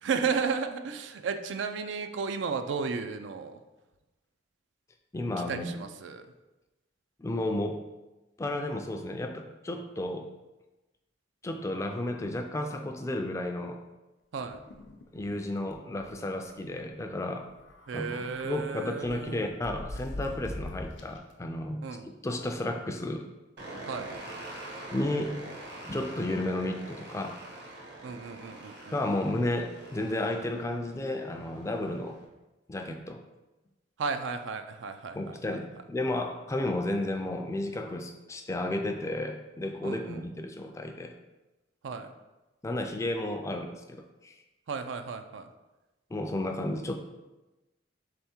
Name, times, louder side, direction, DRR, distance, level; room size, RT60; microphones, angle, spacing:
voice 1, 0.0-3.6 5.5-6.3 14.3-14.6 17.9-19.5 21.8-22.1 23.9-24.2 28.0-28.9 34.0-35.3 39.8-40.2 41.8-42.1 44.7-45.5, right 5 dB, 80° right, 8 dB, 0.4 m, -33 dB
voice 2, 5.1-5.8 7.2-7.8 8.4-10.3 11.4-13.8 15.1-17.5 17.9-23.3 24.9-25.4 25.8-27.4 28.9-32.2 32.7-33.2 35.1-41.1 42.6-44.4 46.1-47.0, left 1 dB, 15° left, 5 dB, 0.3 m, -33 dB
sound 1, 14.4-15.4 15.7-15.8 16.1-16.3 17.5-18.5 19.0-21.3, left 1 dB, 80° left, 0.5 m, -42 dB
sound 2, 23.6-32.2, right 1 dB, 65° right, 1.0 m, -45 dB
3.5 x 3.4 x 4.3 m, 1.1 s
head